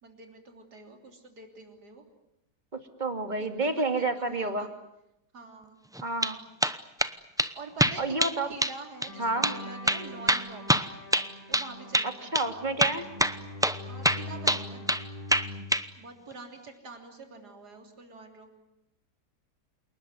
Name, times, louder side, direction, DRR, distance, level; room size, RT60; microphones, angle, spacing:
voice 1, 0.0-2.0 3.4-4.7 5.3-5.8 7.5-8.2 8.5-10.6 11.5-12.3 13.9-14.8 15.9-18.5, right 3 dB, 75° right, 3 dB, 3.9 m, -46 dB
voice 2, 3.0-4.7 6.0-6.4 8.0-8.5 9.2-9.5 12.3-13.0, right 2 dB, 25° right, 6 dB, 2.4 m, -29 dB
sound 1, 5.9-6.3 6.6-7.1 7.4-7.5 7.8-8.4 8.6-8.8 9.0-9.1 9.4-9.6 9.9-11.7 11.9-12.1 12.3-12.5 12.8-13.8 14.0-15.0 15.3-15.9, equal, 5° right, 0.4 m, -25 dB
sound 2, 9.1-15.6, left 2 dB, 20° left, 4.5 m, -43 dB
28.0 x 19.5 x 9.6 m, 0.86 s
omnidirectional pair, 1.7 m